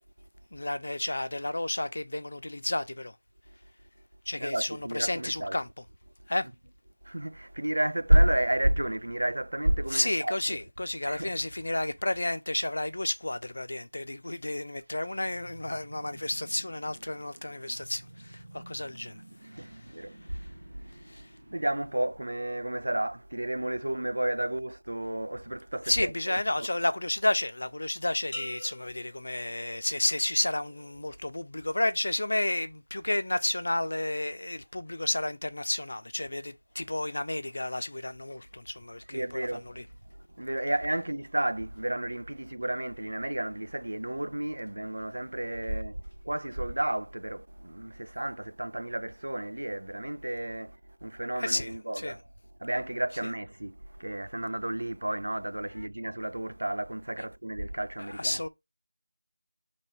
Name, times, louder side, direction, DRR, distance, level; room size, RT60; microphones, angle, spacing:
voice 1, 0.5-3.2 4.3-5.7 6.3-6.5 9.9-20.5 21.0-21.3 25.9-39.8 51.4-52.1 57.2-57.3 58.0-58.5, left 1 dB, 55° left, 0.5 m, -32 dB
voice 2, 4.4-5.6 7.0-10.6 11.1-11.4 19.5-20.4 20.7-20.8 21.5-26.7 39.1-39.8 40.2-52.2 52.6-58.4, right 1 dB, 85° right, 0.3 m, -31 dB
sound 1, 14.5-22.6, right 1 dB, 65° right, 1.2 m, -52 dB
sound 2, 28.3-30.1 30.6-31.0, left 1 dB, 30° left, 0.8 m, -44 dB
2.9 x 2.7 x 4.4 m
figure-of-eight pair, 180°, 0 cm